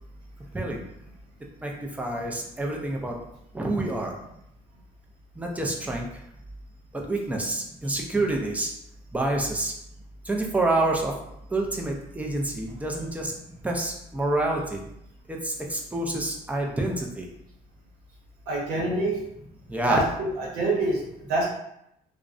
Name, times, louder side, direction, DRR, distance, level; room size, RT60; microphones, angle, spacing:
voice 1, 2.0-3.1 3.5-4.1 5.4-6.1 7.1-8.7 9.1-9.7 10.3-11.1 11.5-13.3 13.6-14.8 15.4-17.3 19.7-20.0, right 2 dB, 10° right, 0 dB, 0.4 m, -27 dB
voice 2, 18.5-19.2 19.9-21.0 21.3-21.5, right 2 dB, 90° right, -2 dB, 0.7 m, -26 dB
2.5 x 2.0 x 2.4 m, 0.79 s
cardioid pair, 110°, 17 cm